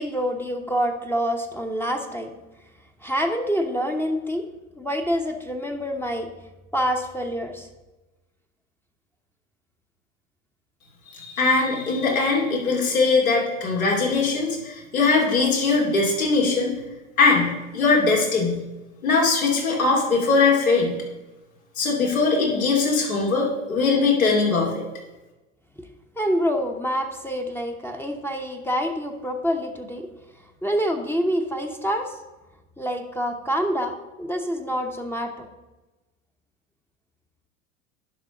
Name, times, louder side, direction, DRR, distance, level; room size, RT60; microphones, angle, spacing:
voice 1, 0.0-2.3 3.0-4.4 4.8-6.3 6.7-7.7 25.8-25.9 26.2-30.1 30.6-32.2 32.8-35.5, equal, 5° left, 3 dB, 0.8 m, -26 dB
voice 2, 11.1-16.7 17.2-18.6 19.0-20.9 21.8-24.8, left 4 dB, 85° left, -1 dB, 2.6 m, -21 dB
11.0 x 5.5 x 3.8 m, 1.1 s
hypercardioid pair, 90°, 41 cm